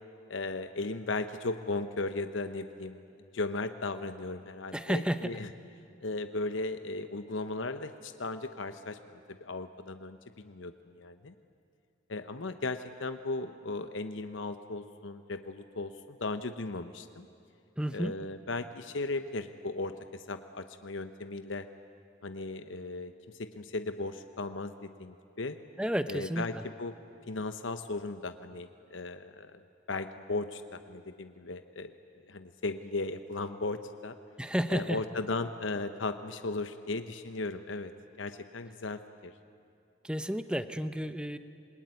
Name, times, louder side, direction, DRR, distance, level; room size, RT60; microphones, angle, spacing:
voice 1, 0.3-5.5 6.0-11.3 12.1-17.3 17.9-21.7 22.2-25.6 26.1-26.9 27.3-29.6 29.9-31.9 32.3-34.1 34.7-37.9 38.2-39.3, left 3 dB, 75° left, 9 dB, 0.9 m, -36 dB
voice 2, 4.7-5.3 17.8-18.1 25.8-26.4 34.4-35.0 40.0-41.4, equal, 5° right, 11 dB, 0.8 m, -31 dB
27.0 x 21.0 x 9.6 m, 2.5 s
head